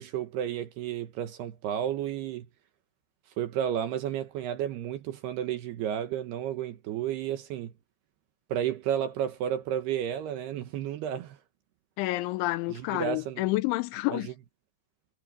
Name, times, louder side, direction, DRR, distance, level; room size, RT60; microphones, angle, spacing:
voice 1, 0.0-2.5 3.4-7.7 8.5-11.4 12.7-13.4 14.1-14.3, right 10 dB, 75° right, 2.5 m, -32 dB
voice 2, 12.0-14.3, left 20 dB, 85° left, 2.9 m, -29 dB
omnidirectional pair, 6.0 m